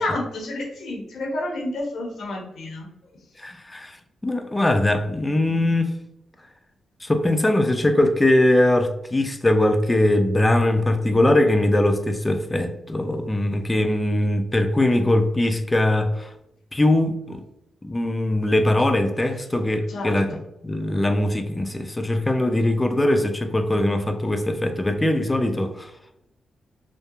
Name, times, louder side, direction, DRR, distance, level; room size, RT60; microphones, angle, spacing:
voice 1, 0.0-2.9 19.9-20.4, left 2 dB, 70° left, 0.7 m, -30 dB
voice 2, 3.4-4.0 4.2-5.9 7.0-16.3 16.7-17.4 17.8-20.4 20.6-25.9, left 1 dB, 20° left, 0.4 m, -21 dB
2.8 x 2.1 x 2.3 m
supercardioid pair, 55°, 0 cm